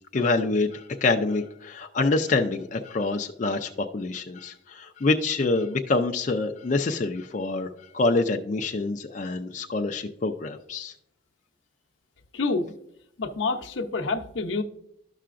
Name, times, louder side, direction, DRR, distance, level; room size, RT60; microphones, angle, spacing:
voice 1, 0.1-10.9, left 3 dB, 40° left, 3 dB, 0.4 m, -26 dB
voice 2, 12.3-12.7 13.2-14.6, left 3 dB, 80° left, 4 dB, 0.7 m, -27 dB
12.5 x 5.7 x 2.5 m, 0.75 s
head